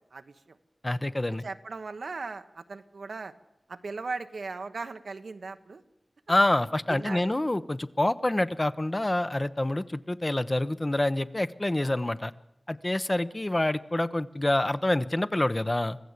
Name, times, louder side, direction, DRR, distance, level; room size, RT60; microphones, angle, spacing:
voice 1, 0.1-0.6 1.4-3.3 3.7-5.8 6.9-7.3, right 4 dB, 85° right, 8 dB, 1.1 m, -38 dB
voice 2, 0.8-1.4 6.3-12.3 12.7-16.0, left 1 dB, 30° left, 13 dB, 0.9 m, -27 dB
25.0 x 15.0 x 8.3 m, 0.89 s
cardioid pair, 45°, 0 cm